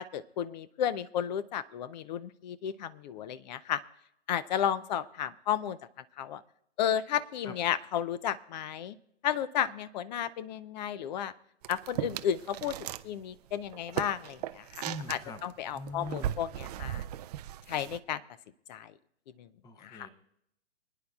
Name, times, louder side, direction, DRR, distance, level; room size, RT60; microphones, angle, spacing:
voice 1, 0.0-3.8 4.3-5.8 6.2-6.4 6.8-9.0 9.2-11.3 11.7-17.0 17.7-18.2 18.7-18.9 19.4-19.5 19.8-20.1, left 9 dB, 40° left, 16 dB, 0.6 m, -33 dB
sound 1, 11.6-13.1 13.3-18.0, right 12 dB, 35° right, 0.4 m, -38 dB
voice 2, 14.8-15.4 15.7-16.4 19.6-20.1, left 2 dB, 10° left, 10 dB, 0.8 m, -42 dB
24.5 x 9.9 x 2.4 m, 0.77 s
hypercardioid pair, 120°, 35 cm